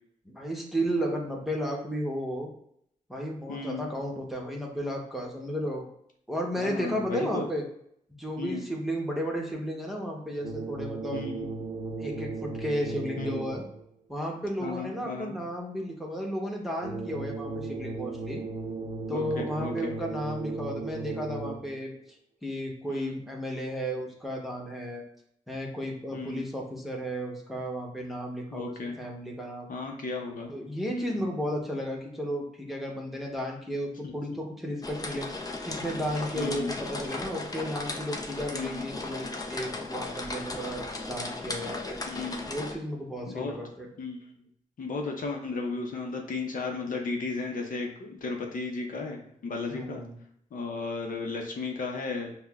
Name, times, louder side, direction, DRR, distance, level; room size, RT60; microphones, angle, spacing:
voice 1, 0.3-2.5 3.1-5.9 6.3-7.6 8.2-11.2 12.0-13.6 14.1-18.4 19.1-21.9 22.4-25.0 25.5-29.7 30.5-35.3 35.7-42.0 42.5-43.9 49.7-50.2, equal, ahead, -1 dB, 1.0 m, -33 dB
voice 2, 3.5-3.9 6.6-7.5 8.4-8.6 11.1-11.5 13.2-13.4 14.6-15.3 19.1-19.9 22.9-23.1 26.1-26.5 28.5-28.9 29.7-30.5 30.9-31.3 34.0-34.1 36.3-36.7 38.5-38.9 42.1-42.5 43.3-43.6 44.0-44.3 44.8-50.0 50.5-52.3, left 3 dB, 70° left, 2 dB, 0.6 m, -34 dB
sound 1, 10.4-13.8 16.8-21.8, right 3 dB, 85° right, 0.6 m, -36 dB
sound 2, 34.8-42.7, left 2 dB, 25° left, 0.6 m, -36 dB
5.4 x 2.1 x 2.4 m, 0.70 s
cardioid pair, 55°, 14 cm